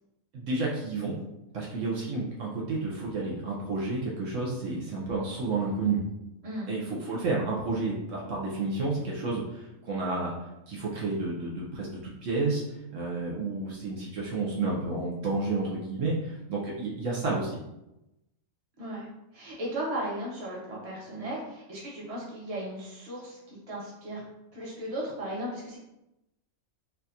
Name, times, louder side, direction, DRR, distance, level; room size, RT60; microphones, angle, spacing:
voice 1, 0.3-1.2 1.5-6.0 6.7-10.3 10.7-12.6 12.9-17.6, right 3 dB, 70° right, -4 dB, 1.0 m, -31 dB
voice 2, 18.8-19.1 19.3-24.2 24.5-25.8, right 1 dB, 30° right, -5 dB, 1.0 m, -36 dB
4.1 x 2.4 x 2.7 m, 0.92 s
omnidirectional pair, 1.4 m